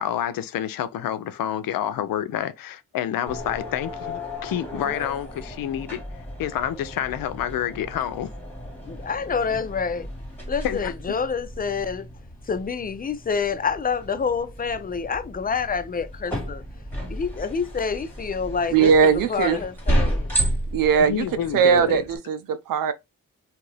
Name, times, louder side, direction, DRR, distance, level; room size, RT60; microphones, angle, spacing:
voice 1, 0.0-6.0 6.4-8.3 10.6-10.9 21.0-22.0, left 10 dB, 85° left, 0.5 m, -28 dB
sound 1, 3.3-22.2, right 1 dB, 5° left, 1.7 m, -33 dB
voice 2, 8.8-10.1 10.5-12.1 12.4-16.6 17.1-20.4, left 5 dB, 30° left, 0.4 m, -27 dB
voice 3, 18.7-19.6 20.7-21.2 21.5-22.9, right 6 dB, 75° right, 0.6 m, -19 dB
2.7 x 2.5 x 3.2 m
cardioid pair, 80°, 33 cm